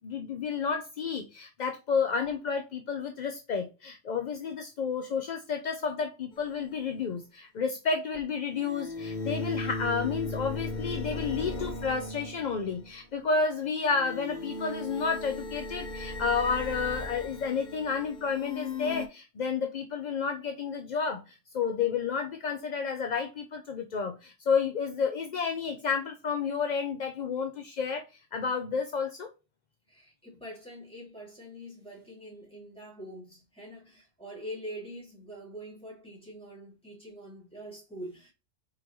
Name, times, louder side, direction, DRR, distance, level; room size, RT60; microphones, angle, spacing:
voice 1, 0.0-28.0 28.3-29.3, left 5 dB, 60° left, 0.4 m, -31 dB
sound 1, 6.3-6.4 8.5-13.0 13.8-19.1, left 2 dB, 40° left, 0.9 m, -37 dB
voice 2, 29.9-38.3, equal, 5° left, 2.3 m, -44 dB
4.5 x 3.8 x 3.0 m
omnidirectional pair, 1.3 m